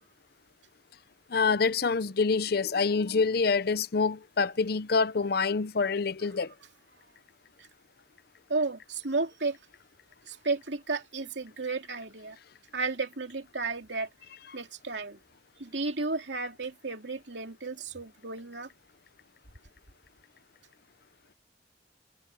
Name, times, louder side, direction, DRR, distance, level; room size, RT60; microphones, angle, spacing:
voice 1, 1.3-6.5, left 4 dB, 60° left, 0.7 m, -26 dB
voice 2, 8.5-9.6 10.3-12.4 12.7-14.1 14.5-15.2 15.6-18.7, right 3 dB, 80° right, 2.8 m, -33 dB
head